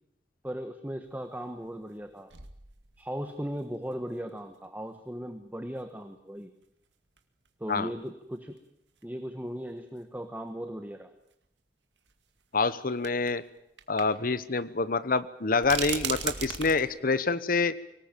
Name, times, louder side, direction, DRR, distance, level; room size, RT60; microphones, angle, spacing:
voice 1, 0.4-2.3 3.0-6.5 7.6-8.6 9.0-11.1, equal, 10° right, 7 dB, 1.3 m, -37 dB
sound 1, 1.1-1.2 1.9-2.0 2.3-3.3 3.9-4.0 5.8-5.9 7.2-7.3 7.4-7.5 8.6-8.7 9.0-9.1 10.5-10.6 12.1-12.2 13.0-13.4 13.8-14.0 14.3-14.4 15.6-16.8, right 8 dB, 90° right, 2.2 m, -35 dB
voice 2, 12.5-13.4 13.9-17.7, left 4 dB, 55° left, 15 dB, 1.1 m, -27 dB
24.0 x 19.0 x 9.0 m, 0.80 s
head